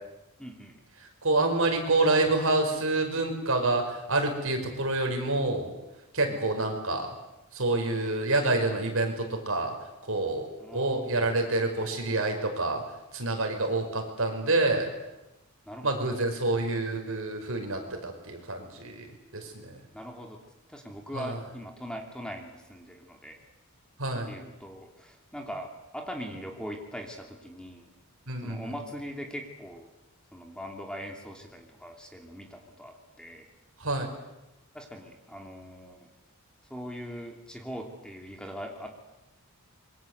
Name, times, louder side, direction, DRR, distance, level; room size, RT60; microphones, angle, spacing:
voice 1, 0.4-0.8 6.3-6.4 10.6-11.2 15.7-16.2 19.9-23.4 24.3-27.9 28.4-29.9 30.3-33.5 34.7-36.0 36.7-38.9, equal, 5° left, 3 dB, 2.8 m, -41 dB
voice 2, 1.0-5.7 6.1-7.1 7.5-9.7 10.1-10.5 10.7-12.8 13.1-14.9 15.8-19.1 19.3-19.7 21.1-21.4 24.0-24.3 28.3-28.8 33.8-34.1, right 2 dB, 60° right, 4 dB, 5.5 m, -27 dB
26.5 x 23.5 x 8.1 m, 0.98 s
head